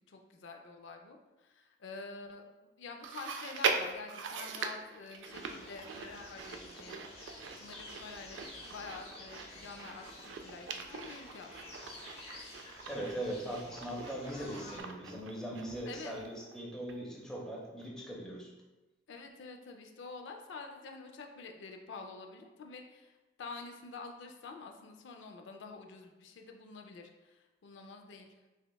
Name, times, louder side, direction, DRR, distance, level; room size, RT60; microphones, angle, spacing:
voice 1, 0.0-2.4 2.8-11.9 15.8-16.2 19.1-23.1 23.4-28.3, left 4 dB, 75° left, 3 dB, 0.4 m, -48 dB
Chewing mastication, 3.0-16.6 16.9-17.0 17.8-17.9, right 5 dB, 80° right, 0.3 m, -41 dB
sound 1, 5.3-14.8, left 2 dB, 30° left, 0.8 m, -51 dB
voice 2, 12.9-18.5, right 1 dB, 5° left, -3 dB, 0.5 m, -40 dB
6.2 x 2.3 x 2.2 m, 1.1 s
head